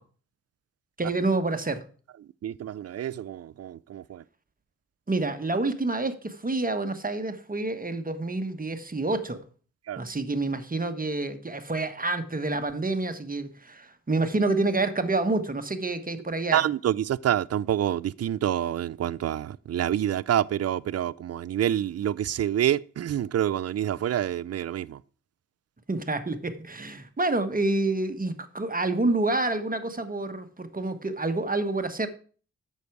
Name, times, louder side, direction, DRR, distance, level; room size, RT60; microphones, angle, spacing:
voice 1, 1.0-1.8 5.1-9.4 10.0-16.7 25.9-32.1, right 2 dB, 30° right, 1.3 m, -28 dB
voice 2, 2.4-4.2 9.9-10.0 16.5-25.0, right 11 dB, 55° right, 0.4 m, -27 dB
8.3 x 6.6 x 4.7 m
supercardioid pair, 45°, 30 cm